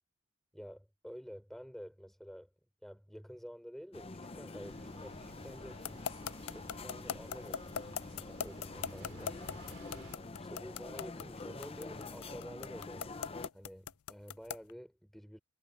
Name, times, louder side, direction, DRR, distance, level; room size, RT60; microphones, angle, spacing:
voice 1, 0.5-2.5 2.8-5.9 6.5-7.8 8.2-9.4 10.4-15.4, equal, ahead, 5.5 m, -50 dB
sound 1, 3.9-13.5, left 3 dB, 25° left, 0.6 m, -47 dB
sound 2, 4.6-10.2, right 1 dB, 85° right, 3.3 m, -54 dB
sound 3, 5.8-14.7, left 8 dB, 80° left, 0.4 m, -39 dB
head